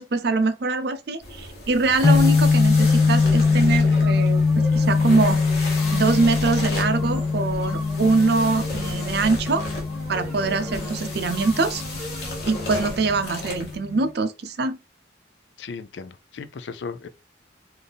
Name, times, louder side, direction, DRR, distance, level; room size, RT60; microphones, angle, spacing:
voice 1, 0.0-5.4 5.9-9.7 10.1-11.8 12.5-14.8, right 3 dB, 65° right, 0.5 m, -23 dB
sound 1, 1.2-13.8, left 2 dB, 60° left, 1.4 m, -35 dB
sound 2, 2.0-14.1, left 4 dB, 20° left, 0.4 m, -22 dB
sound 3, 2.8-13.0, right 1 dB, 5° right, 1.3 m, -38 dB
voice 2, 15.6-17.1, left 5 dB, 80° left, 0.4 m, -36 dB
3.4 x 2.6 x 3.9 m
head